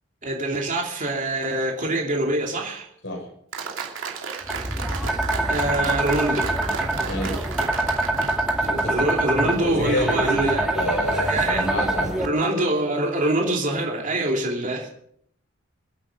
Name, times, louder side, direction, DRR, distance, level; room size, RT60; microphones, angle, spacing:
voice 1, 0.2-2.9 5.5-6.5 8.9-10.6 11.1-11.7 12.2-14.9, right 1 dB, 40° right, 0 dB, 2.9 m, -25 dB
Applause, 3.5-9.4, right 5 dB, 70° right, 2.7 m, -33 dB
sound 1, 4.5-12.3, right 2 dB, 5° right, 2.0 m, -25 dB
voice 2, 7.0-7.4 8.6-9.1 9.3-12.2, equal, 70° left, 0 dB, 6.5 m, -28 dB
26.0 x 8.7 x 5.2 m, 0.68 s
head